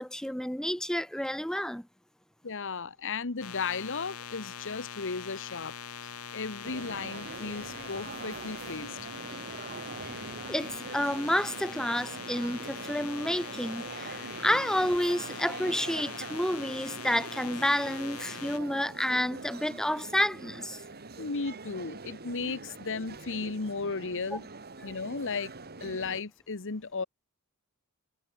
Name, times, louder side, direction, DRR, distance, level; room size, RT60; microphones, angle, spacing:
voice 1, 0.0-1.9 10.5-20.8 24.3-24.4, equal, 5° left, 0.8 m, -30 dB
voice 2, 2.4-5.8 6.3-9.0 21.2-24.5 24.8-25.5 25.8-27.0, left 4 dB, 60° left, 1.2 m, -35 dB
sound 1, 3.4-18.6, left 7 dB, 75° left, 1.8 m, -43 dB
sound 2, 6.6-26.2, right 3 dB, 45° right, 2.3 m, -43 dB
head